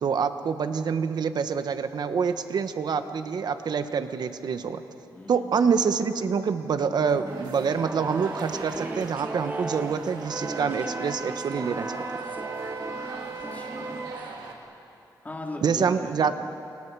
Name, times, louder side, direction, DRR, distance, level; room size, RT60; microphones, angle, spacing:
voice 1, 0.0-4.8 5.3-12.0 15.6-16.4, right 6 dB, 65° right, 9 dB, 1.3 m, -26 dB
voice 2, 5.1-5.5 13.1-14.1 15.2-16.1, left 2 dB, 20° left, -1 dB, 4.4 m, -39 dB
sound 1, 7.1-14.5, right 2 dB, 20° right, 0.6 m, -37 dB
sound 2, 7.2-14.5, right 4 dB, 90° right, 2.7 m, -41 dB
Wind instrument woodwind instrument, 10.3-14.2, right 3 dB, 40° right, 1.9 m, -38 dB
29.5 x 28.0 x 4.9 m, 2.6 s
cardioid pair, 80°, 8 cm